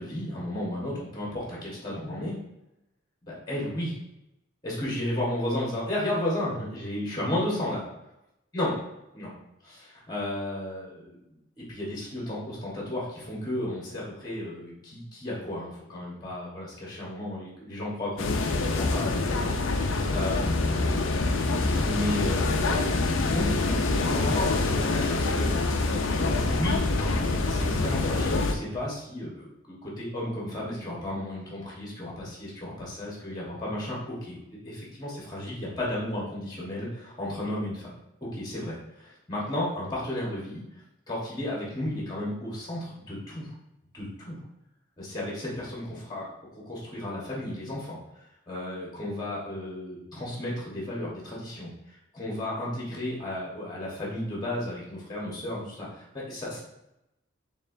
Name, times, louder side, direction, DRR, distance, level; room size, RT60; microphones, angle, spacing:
voice 1, 0.0-2.3 3.2-3.9 4.6-7.8 8.5-8.7 9.1-9.3 9.6-11.2 11.7-20.9 21.8-23.5 23.8-25.5 25.8-26.1 26.5-34.4 34.6-38.0 38.2-40.6 41.1-43.5 43.9-44.4 45.0-46.3 46.6-48.0 48.5-51.7 52.1-56.6, left 1 dB, 20° left, -5 dB, 1.1 m, -33 dB
sound 1, 18.2-28.5, left 3 dB, 75° left, 0.5 m, -25 dB
4.2 x 3.7 x 2.6 m, 0.89 s
head